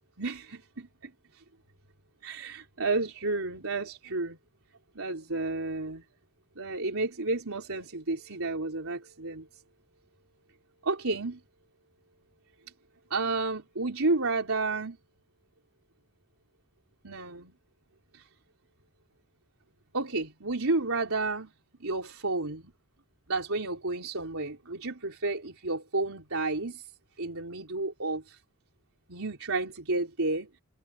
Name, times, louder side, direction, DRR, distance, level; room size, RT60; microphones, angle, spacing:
voice 1, 0.2-1.4 2.2-4.4 5.0-6.0 6.6-9.6 10.8-11.4 13.1-15.0 17.0-17.5 18.1-18.3 19.9-21.5 21.8-22.7 23.3-26.9 27.2-28.4 29.1-30.5, right 3 dB, 85° right, 3.6 m, -31 dB
head